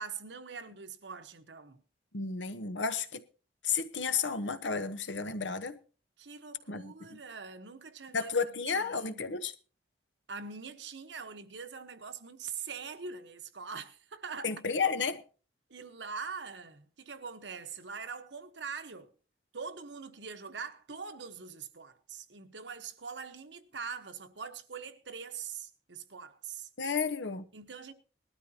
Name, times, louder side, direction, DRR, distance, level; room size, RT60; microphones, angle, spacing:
voice 1, 0.0-1.8 6.2-9.2 10.3-14.6 15.7-19.1 19.5-26.7 27.5-27.9, right 5 dB, 80° right, 1.2 m, -43 dB
voice 2, 2.1-3.2 3.6-5.8 6.7-7.2 8.1-9.5 14.4-15.2 26.8-27.4, left 5 dB, 90° left, 1.1 m, -32 dB
19.5 x 13.0 x 2.9 m
head